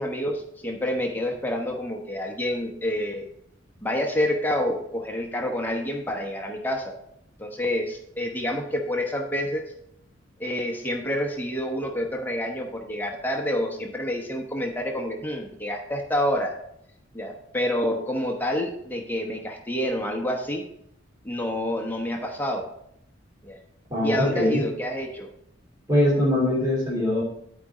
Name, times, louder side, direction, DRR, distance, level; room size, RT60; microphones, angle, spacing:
voice 1, 0.0-3.3 3.8-6.9 7.4-9.6 10.4-16.5 17.1-20.6 21.2-22.6 23.4-23.6 24.0-25.3, left 1 dB, 10° left, 1 dB, 1.0 m, -28 dB
voice 2, 23.9-24.6 25.9-27.2, left 1 dB, 20° right, -6 dB, 2.5 m, -22 dB
11.0 x 5.0 x 4.1 m, 0.74 s
head